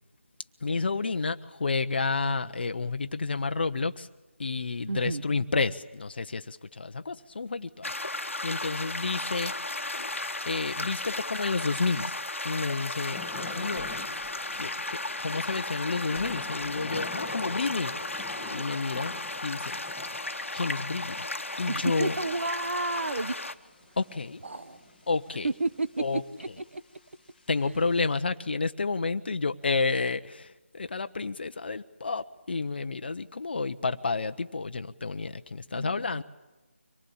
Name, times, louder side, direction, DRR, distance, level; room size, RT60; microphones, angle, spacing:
voice 1, 0.6-4.1 4.4-7.9 8.4-9.5 10.4-12.1 12.4-13.2 13.5-13.9 14.5-17.9 18.5-19.1 19.4-19.8 20.5-21.3 21.6-22.2 24.0-24.4 25.1-25.5 26.0-26.2 27.5-36.2, left 4 dB, 50° left, 9 dB, 0.9 m, -30 dB
voice 2, 4.9-5.2 21.7-23.4 24.4-24.8 25.4-25.9 26.4-26.5 26.7-26.8 27.7-27.8 35.7-36.2, right 2 dB, 65° right, 13 dB, 1.1 m, -31 dB
sound 1, 7.8-23.5, left 2 dB, 75° left, 1.2 m, -35 dB
Thunder / Rain, 10.1-28.2, left 3 dB, ahead, 1.7 m, -47 dB
sound 2, 13.8-15.1 15.6-17.7 18.3-18.4, left 4 dB, 20° left, 1.3 m, -53 dB
24.5 x 19.0 x 8.5 m, 1.1 s
figure-of-eight pair, 160°, 7 cm